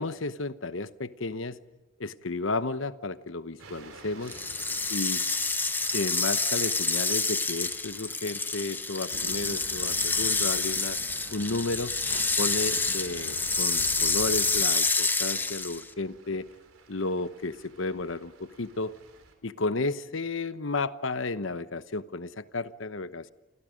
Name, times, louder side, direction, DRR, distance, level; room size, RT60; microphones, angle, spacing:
voice 1, 0.0-1.6 2.0-4.4 4.9-5.2 5.9-11.0 11.3-11.9 12.4-16.5 16.9-19.0 19.4-23.3, left 3 dB, 70° left, 13 dB, 1.0 m, -32 dB
sound 1, 3.6-19.3, right 3 dB, 85° right, 4.1 m, -53 dB
sound 2, 4.3-15.9, left 3 dB, 10° left, 0.9 m, -28 dB
sound 3, 9.1-14.6, right 3 dB, 70° right, 1.0 m, -45 dB
28.5 x 27.0 x 5.2 m, 1.1 s
head